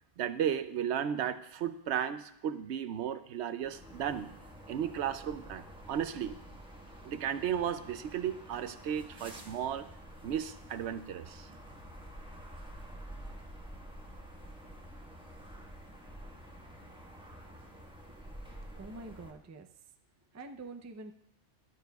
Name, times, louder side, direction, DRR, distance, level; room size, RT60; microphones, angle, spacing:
voice 1, 0.2-4.3 4.7-6.3 7.0-9.9 10.2-11.5, right 9 dB, 75° right, 12 dB, 0.9 m, -34 dB
sound 1, 3.6-19.3, equal, 5° right, 1.3 m, -49 dB
voice 2, 18.1-19.9 20.3-21.1, right 2 dB, 25° right, 6 dB, 0.3 m, -47 dB
14.0 x 11.0 x 2.3 m, 0.74 s
omnidirectional pair, 1.2 m